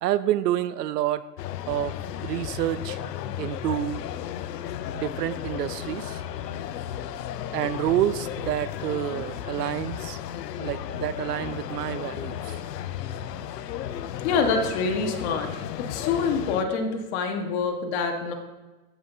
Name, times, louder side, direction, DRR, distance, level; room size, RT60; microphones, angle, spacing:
voice 1, 0.0-1.2 1.7-2.0 2.2-3.0 3.4-4.0 4.9-6.2 7.5-10.2 10.6-12.6, right 12 dB, 80° right, 16 dB, 0.6 m, -28 dB
sound 1, 1.4-16.6, left 10 dB, 85° left, 0.7 m, -34 dB
voice 2, 14.2-15.5 15.8-18.3, left 5 dB, 45° left, 3 dB, 1.4 m, -26 dB
14.0 x 5.8 x 2.7 m, 1.1 s
supercardioid pair, 145°, 47 cm